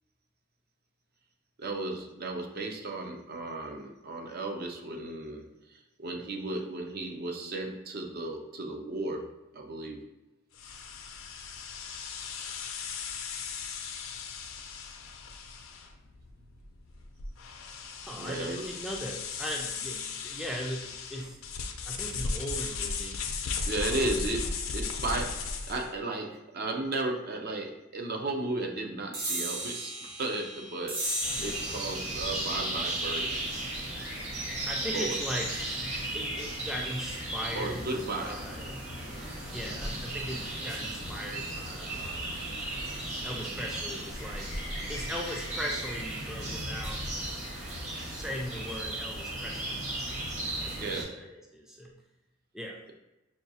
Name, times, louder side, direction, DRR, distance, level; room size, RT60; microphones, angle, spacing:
voice 1, 1.6-10.1 18.2-18.7 23.7-33.4 34.9-35.2 37.5-38.8 42.3-42.6 50.7-51.2, right 2 dB, 50° right, 2 dB, 0.5 m, -35 dB
sound 1, 10.5-25.9, left 5 dB, 90° left, 0.5 m, -37 dB
voice 2, 18.1-21.4 21.8-23.2 23.8-24.2 34.4-35.5 36.1-37.9 38.2-38.7 39.5-42.5 43.2-44.6 44.9-47.0 48.1-49.8 50.6-51.9 52.5-52.8, equal, ahead, -1 dB, 0.3 m, -39 dB
sound 2, 29.1-36.0, right 1 dB, 80° right, 0.9 m, -38 dB
sound 3, 31.2-51.0, right 1 dB, 35° right, 1.1 m, -35 dB
5.9 x 2.3 x 2.7 m, 1.0 s
head